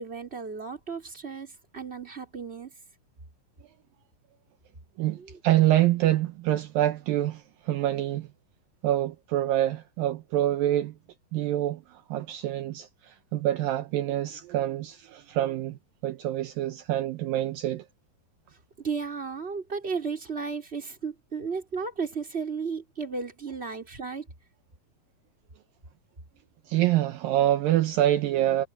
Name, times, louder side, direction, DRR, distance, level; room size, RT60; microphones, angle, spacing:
voice 1, 0.0-2.7 5.2-5.4 18.8-24.3, right 5 dB, 15° right, 4.0 m, -34 dB
voice 2, 5.0-8.3 8.8-11.0 11.3-17.9 26.7-28.7, right 13 dB, 75° right, 2.5 m, -26 dB
omnidirectional pair, 4.4 m